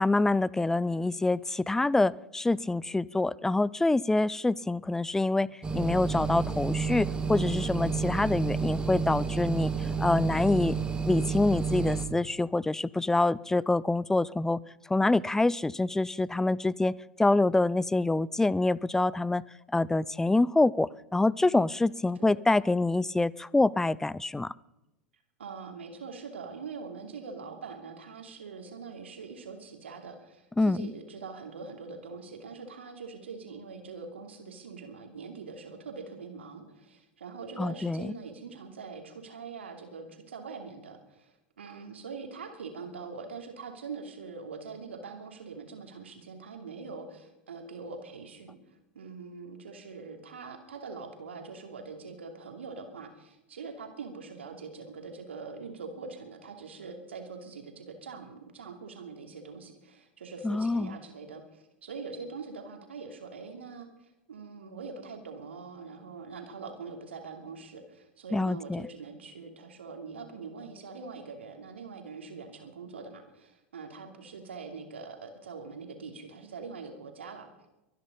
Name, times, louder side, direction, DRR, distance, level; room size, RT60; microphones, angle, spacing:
voice 1, 0.0-9.7 10.0-10.8 11.1-14.6 14.9-19.4 19.7-24.5 30.6-30.9 37.6-38.1 60.4-61.0 68.3-68.8, left 2 dB, 5° left, 23 dB, 0.4 m, -26 dB
sound 1, 5.6-12.1, right 5 dB, 15° right, 2.0 m, -30 dB
voice 2, 25.4-48.6 48.9-77.5, right 4 dB, 75° right, 5 dB, 2.8 m, -43 dB
23.5 x 10.5 x 5.4 m, 0.95 s
figure-of-eight pair, 85°, 6 cm